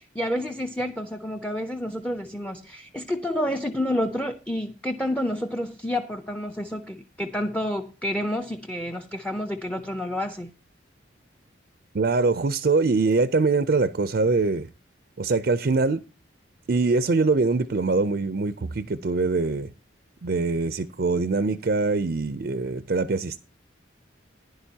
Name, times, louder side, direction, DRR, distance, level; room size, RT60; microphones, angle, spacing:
voice 1, 0.0-10.5, left 1 dB, 5° left, 0.6 m, -29 dB
voice 2, 11.9-14.7 15.2-16.0 16.7-19.7 20.2-23.4, right 3 dB, 50° right, 0.5 m, -23 dB
16.0 x 10.5 x 2.8 m
head